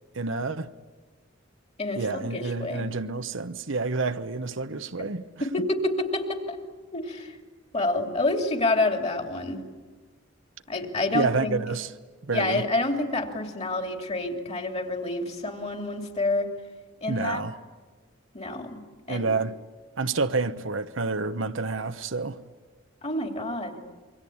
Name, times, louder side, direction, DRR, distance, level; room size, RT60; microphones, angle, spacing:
voice 1, 0.1-0.7 1.9-5.3 11.1-11.9 12.2-12.6 17.1-17.6 19.1-19.6 20.0-22.4, right 3 dB, 75° right, 1.0 m, -28 dB
voice 2, 1.8-2.9 5.4-6.6 6.9-7.3 7.7-9.6 10.7-11.6 12.3-16.5 17.0-17.4 18.3-18.8 19.1-19.3 23.0-23.8, left 2 dB, 35° left, 2.9 m, -28 dB
28.0 x 24.0 x 8.7 m
head